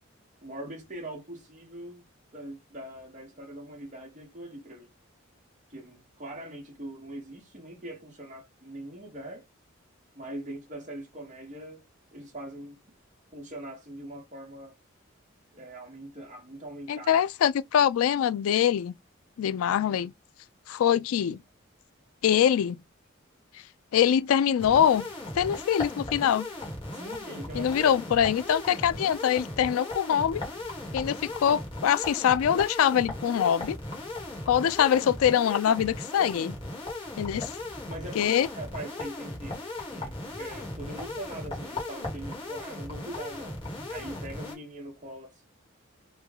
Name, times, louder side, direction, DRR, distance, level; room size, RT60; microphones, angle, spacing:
voice 1, 0.4-2.0 2.3-4.9 5.7-9.4 10.2-11.8 12.1-12.8 13.3-14.7 15.5-17.2 26.9-28.2 36.2-36.5 37.9-39.6 39.9-43.6 43.9-45.5, right 1 dB, 35° right, 1.1 m, -42 dB
voice 2, 16.9-18.9 19.4-20.1 20.7-21.4 22.2-22.8 23.9-25.1 25.3-26.5 27.5-30.4 30.9-33.8 34.5-36.5 37.2-37.5 38.2-38.5, left 9 dB, 90° left, 0.3 m, -24 dB
sound 1, 24.6-44.5, left 2 dB, 25° left, 1.2 m, -37 dB
3.2 x 2.3 x 3.5 m
head